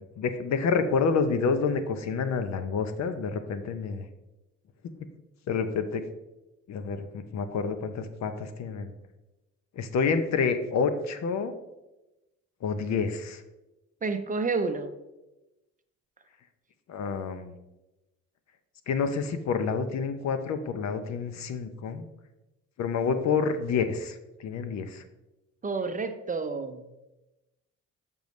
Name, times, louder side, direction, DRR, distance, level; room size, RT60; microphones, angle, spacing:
voice 1, 0.2-4.0 5.5-6.0 6.7-8.9 9.7-11.5 12.6-13.4 16.9-17.6 18.9-22.0 22.8-25.0, left 5 dB, 65° left, 9 dB, 0.7 m, -28 dB
voice 2, 14.0-14.9 25.6-26.8, right 4 dB, 25° right, 8 dB, 0.5 m, -29 dB
6.7 x 5.3 x 3.1 m, 0.99 s
cardioid pair, 90°, 30 cm